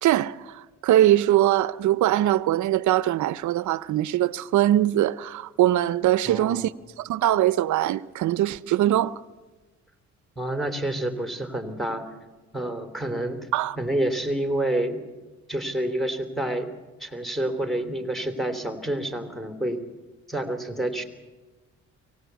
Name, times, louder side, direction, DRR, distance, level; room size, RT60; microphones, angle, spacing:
voice 1, 0.0-6.7 7.0-9.2 13.5-13.8, right 13 dB, 75° right, 0.7 m, -22 dB
voice 2, 6.3-6.6 10.4-12.1 12.5-13.5 13.8-15.0 15.5-16.7 17.0-19.8 20.3-21.0, right 1 dB, ahead, 3.2 m, -28 dB
23.5 x 18.0 x 8.2 m
cardioid pair, 90°, 30 cm